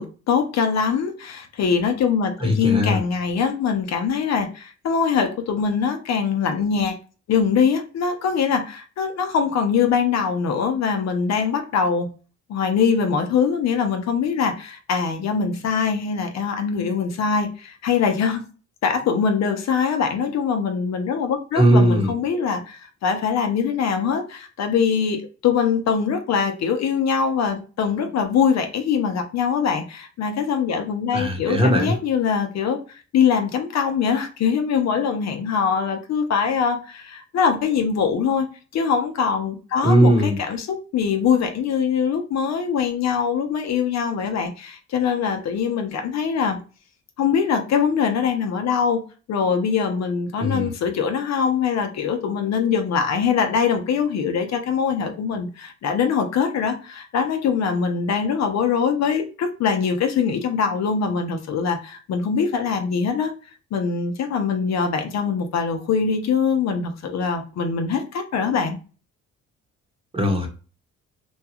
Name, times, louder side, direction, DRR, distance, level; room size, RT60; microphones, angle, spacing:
voice 1, 0.0-7.0 7.3-12.1 12.5-18.4 18.8-46.6 47.2-49.0 49.3-63.3 63.7-68.8, left 6 dB, 60° left, 0.6 m, -23 dB
voice 2, 2.4-3.0 21.5-22.1 31.1-31.9 39.8-40.4 50.4-50.7 70.1-70.5, equal, 20° right, 0.9 m, -18 dB
2.9 x 2.3 x 2.8 m
cardioid pair, 90°, 30 cm